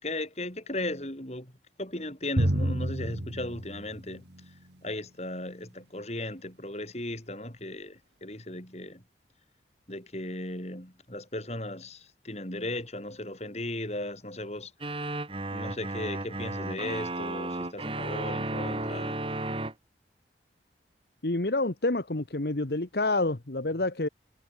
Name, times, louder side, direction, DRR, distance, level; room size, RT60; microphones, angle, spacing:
voice 1, 0.0-9.0 9.9-15.2 15.5-19.2, left 1 dB, 40° left, 6.1 m, -37 dB
Drum, 2.4-4.8, right 1 dB, 80° right, 2.8 m, -30 dB
sound 1, 14.8-19.7, right 2 dB, 30° right, 2.0 m, -33 dB
voice 2, 21.2-24.1, left 2 dB, 65° left, 1.4 m, -28 dB
head